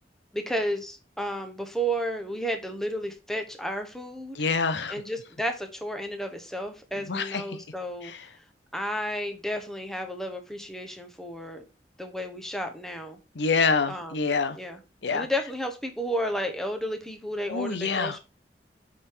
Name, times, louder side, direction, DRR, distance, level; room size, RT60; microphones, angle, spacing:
voice 1, 0.3-4.4 4.9-8.1 8.7-11.6 12.0-13.2 13.9-14.2 14.5-14.8 15.1-18.2, equal, ahead, 5 dB, 0.9 m, -32 dB
voice 2, 4.4-4.9 7.1-7.4 8.0-8.2 13.3-14.6 15.0-15.3 17.5-18.2, left 4 dB, 85° left, 11 dB, 0.8 m, -26 dB
7.9 x 3.7 x 4.6 m, 0.31 s
head